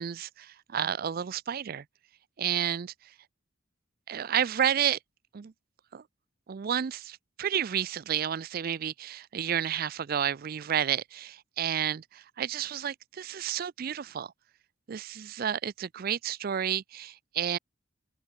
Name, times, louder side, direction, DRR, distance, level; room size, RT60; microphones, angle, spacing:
voice 1, 0.0-1.8 2.4-3.1 4.1-5.0 5.3-5.5 5.9-6.0 6.5-14.3 14.9-17.6, right 9 dB, 45° right, 0.4 m, -31 dB
open air
head